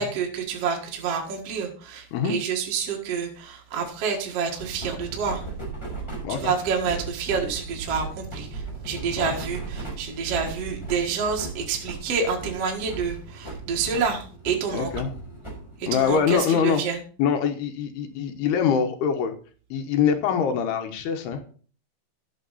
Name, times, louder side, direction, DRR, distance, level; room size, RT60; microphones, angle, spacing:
voice 1, 0.0-5.4 6.4-14.9 15.8-17.0, right 6 dB, 50° right, 1 dB, 2.2 m, -28 dB
sound 1, 4.6-16.4, right 3 dB, 5° left, 5.6 m, -37 dB
voice 2, 14.7-15.1 15.9-16.8 17.2-19.3 19.7-21.5, left 7 dB, 85° left, 6 dB, 3.2 m, -24 dB
12.0 x 8.5 x 4.1 m, 0.41 s
omnidirectional pair, 4.5 m